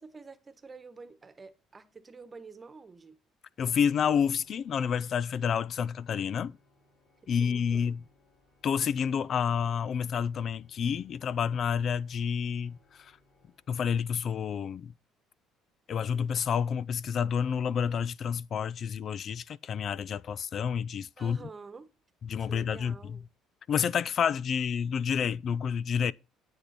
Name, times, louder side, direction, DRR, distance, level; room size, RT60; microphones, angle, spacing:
voice 1, 0.0-3.2 7.4-7.9 21.2-21.9 22.4-23.3 26.0-26.1, right 4 dB, 25° right, 1.2 m, -48 dB
Organ, 3.5-14.3, left 2 dB, 65° left, 4.2 m, -67 dB
voice 2, 3.6-6.6 7.3-8.0 8.6-13.2 13.7-14.9 15.9-21.5 22.2-23.2 23.7-26.1, left 7 dB, 50° left, 0.5 m, -29 dB
9.9 x 8.7 x 4.2 m
cardioid pair, 95°, 0 cm